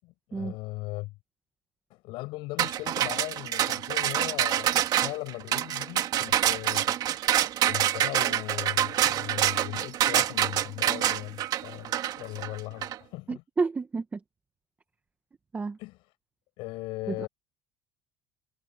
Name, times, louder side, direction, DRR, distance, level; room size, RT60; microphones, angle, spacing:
voice 1, 0.0-1.1 1.9-6.9 7.6-13.4 15.8-16.0 16.6-17.3, left 22 dB, 70° left, 7.8 m, -38 dB
sound 1, 2.6-13.0, right 11 dB, 50° right, 1.9 m, -26 dB
voice 2, 13.3-14.2 15.5-15.8 17.1-17.3, right 4 dB, 20° right, 1.3 m, -30 dB
cardioid pair, 130°, 9 cm